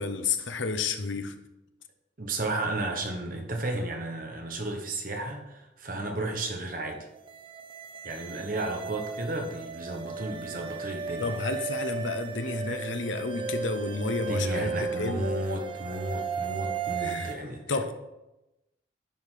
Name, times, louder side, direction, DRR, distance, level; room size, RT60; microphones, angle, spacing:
voice 1, 0.0-1.3 11.2-15.3 17.0-17.3 17.7-17.9, left 3 dB, 80° left, 8 dB, 1.0 m, -31 dB
voice 2, 2.2-7.1 8.0-11.4 14.3-17.9, right 2 dB, 45° right, 3 dB, 1.2 m, -33 dB
sound 1, 7.1-17.3, right 5 dB, 25° right, 0.5 m, -35 dB
10.5 x 5.1 x 5.8 m, 0.96 s
head